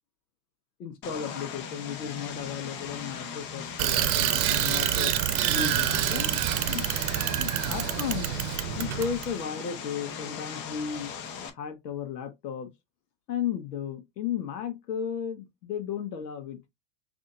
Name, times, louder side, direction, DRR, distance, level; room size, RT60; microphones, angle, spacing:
voice 1, 0.8-5.1 5.5-6.4 6.7-6.9 7.4-8.3 8.8-11.1 11.5-12.7 13.3-16.6, left 8 dB, 75° left, 1.3 m, -34 dB
Vehicle, 1.0-11.5, left 6 dB, 45° left, 1.1 m, -38 dB
Bicycle, 3.8-9.3, right 12 dB, 60° right, 0.8 m, -27 dB
6.2 x 2.9 x 2.6 m
hypercardioid pair, 90°, 49 cm